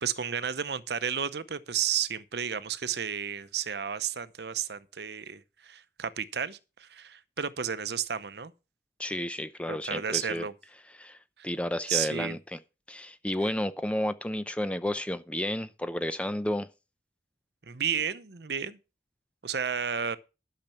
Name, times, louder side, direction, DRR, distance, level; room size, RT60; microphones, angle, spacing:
voice 1, 0.0-8.5 9.7-10.5 11.4-11.5 11.9-12.4 17.7-18.8 19.4-20.2, right 8 dB, 65° right, 0.8 m, -32 dB
voice 2, 9.0-10.4 10.9-11.2 11.4-12.6 12.9-16.7, left 1 dB, 5° left, 0.6 m, -31 dB
12.0 x 6.7 x 5.8 m
head